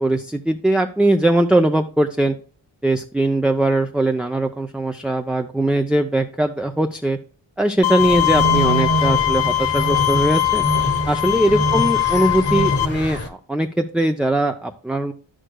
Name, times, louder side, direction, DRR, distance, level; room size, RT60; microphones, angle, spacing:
voice 1, 0.0-2.4 2.8-7.2 7.6-10.7 11.1-15.1, right 1 dB, ahead, 4 dB, 0.5 m, -20 dB
Bowed string instrument, 7.8-12.8, left 14 dB, 65° left, 0.6 m, -21 dB
sound 1, 8.0-13.3, right 1 dB, 30° left, 1.1 m, -25 dB
10.0 x 6.4 x 2.2 m, 0.42 s
cardioid pair, 60°, 45 cm